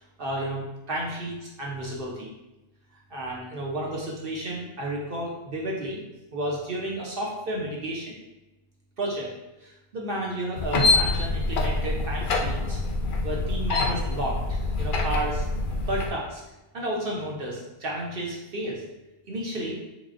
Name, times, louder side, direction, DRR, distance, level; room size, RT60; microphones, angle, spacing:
voice 1, 0.2-2.3 3.1-6.0 6.3-8.2 9.0-9.3 9.6-12.8 13.2-15.4 15.9-16.4 16.7-18.8 19.3-19.8, right 1 dB, 55° right, -3 dB, 0.7 m, -32 dB
sound 1, 10.6-16.1, left 3 dB, 65° left, 0.5 m, -25 dB
3.8 x 3.0 x 2.5 m, 0.99 s
omnidirectional pair, 1.3 m